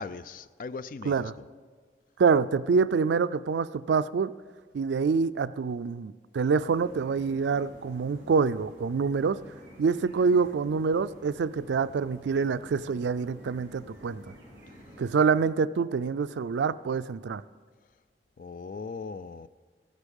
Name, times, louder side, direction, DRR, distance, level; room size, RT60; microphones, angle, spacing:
voice 1, 0.0-1.3 18.4-19.5, left 4 dB, 50° left, 0.3 m, -39 dB
voice 2, 2.2-4.3 4.7-9.4 9.8-14.2 15.0-17.4, right 5 dB, 80° right, 0.4 m, -26 dB
sound 1, 6.6-15.2, equal, 15° right, 3.4 m, -50 dB
15.0 x 8.2 x 5.4 m
head